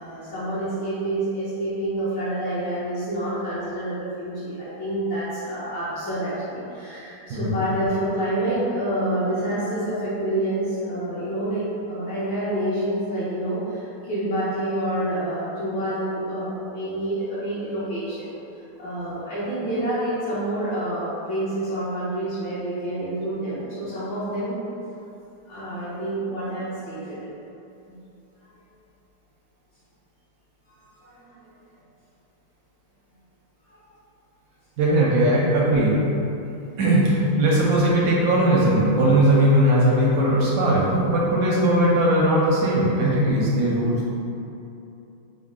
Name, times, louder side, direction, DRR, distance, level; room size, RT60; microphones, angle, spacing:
voice 1, 0.0-24.6 25.5-27.2 27.9-28.0 30.9-31.5 33.7-33.8, right 1 dB, 65° left, -13 dB, 1.5 m, -28 dB
voice 2, 34.8-36.0 36.8-44.2, right 1 dB, 75° right, -4 dB, 1.0 m, -19 dB
5.2 x 2.0 x 3.6 m, 2.8 s
omnidirectional pair, 2.3 m